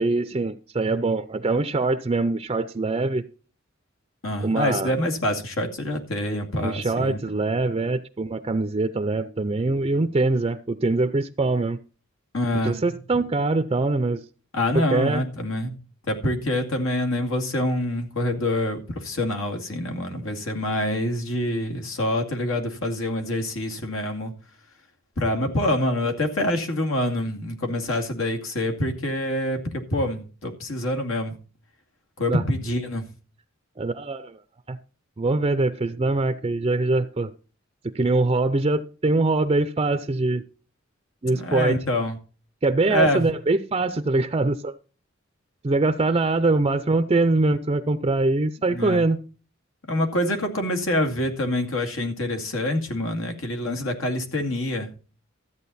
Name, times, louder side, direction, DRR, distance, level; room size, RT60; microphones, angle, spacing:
voice 1, 0.0-3.2 4.4-4.9 6.6-11.8 12.6-14.2 14.9-15.2 32.3-32.4 33.8-34.4 34.7-34.8 35.2-37.3 37.8-40.4 41.2-41.8 42.6-44.8 45.6-49.2, right 2 dB, 30° right, 0.5 m, -23 dB
voice 2, 4.2-7.2 12.3-12.8 14.5-15.8 16.1-24.3 25.2-31.3 32.2-33.1 41.2-42.2 42.9-43.3 48.7-49.0 49.9-54.9, left 1 dB, 80° left, 2.4 m, -26 dB
13.5 x 8.7 x 4.2 m
head